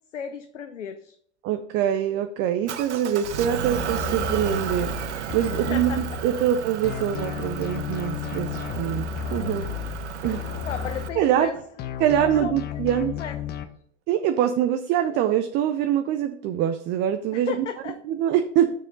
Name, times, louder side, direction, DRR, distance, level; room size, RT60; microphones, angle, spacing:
voice 1, 0.1-1.2 5.7-6.2 10.7-11.6 12.1-12.8 13.2-13.4 17.3-18.0, left 7 dB, 80° left, 8 dB, 0.7 m, -34 dB
voice 2, 1.4-5.0 5.3-9.7 10.2-10.4 11.2-11.5 12.0-13.2 14.1-17.5 18.1-18.7, right 10 dB, 30° right, 8 dB, 0.6 m, -24 dB
Motor vehicle (road) / Engine, 2.7-11.1, right 9 dB, 70° right, 0.8 m, -33 dB
sound 1, 3.7-6.5 6.8-11.5 11.8-13.6, left 9 dB, 25° left, 0.8 m, -33 dB
6.6 x 6.3 x 3.8 m, 0.63 s
figure-of-eight pair, 100°, 36 cm